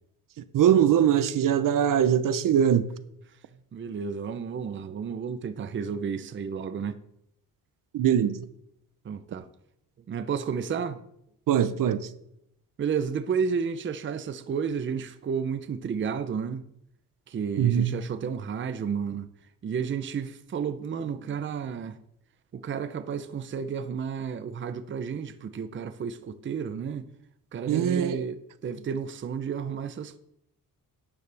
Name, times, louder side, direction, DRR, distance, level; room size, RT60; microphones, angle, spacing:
voice 1, 0.5-2.9 7.9-8.4 11.5-12.1 17.6-17.9 27.7-28.2, right 9 dB, 70° right, 0.7 m, -22 dB
voice 2, 3.7-7.0 9.0-9.5 10.1-11.0 12.8-16.7 17.3-19.3 19.6-22.0 22.5-27.1 27.5-30.2, right 6 dB, 35° right, 0.6 m, -32 dB
12.0 x 9.4 x 3.4 m
cardioid pair, 115°, 34 cm